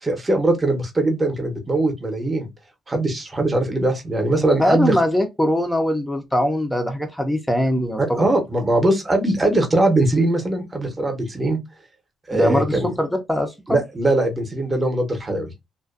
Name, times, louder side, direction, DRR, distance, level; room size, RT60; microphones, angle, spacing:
voice 1, 0.0-2.5 2.9-5.0 8.0-11.6 12.3-12.9 13.7-15.5, right 2 dB, 20° right, 0.8 m, -21 dB
voice 2, 4.6-8.3 12.3-13.8, equal, 5° left, 0.6 m, -21 dB
2.5 x 2.2 x 2.4 m
cardioid pair, 90°, 0 cm